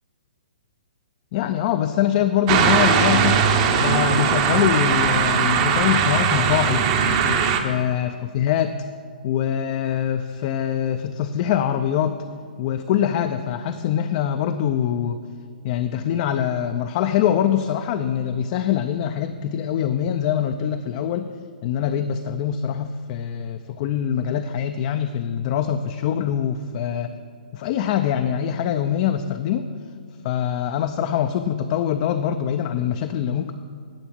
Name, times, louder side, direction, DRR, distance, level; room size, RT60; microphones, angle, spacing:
voice 1, 1.3-3.5 3.8-6.8 7.2-8.8 9.2-12.2 12.6-15.2 15.6-21.3 21.6-27.2 27.5-29.7 30.2-33.5, left 9 dB, 40° left, 7 dB, 0.4 m, -23 dB
sound 1, 2.5-7.6, right 7 dB, 40° right, 0.9 m, -19 dB
10.5 x 6.8 x 6.1 m, 2.2 s
hypercardioid pair, 130°, 5 cm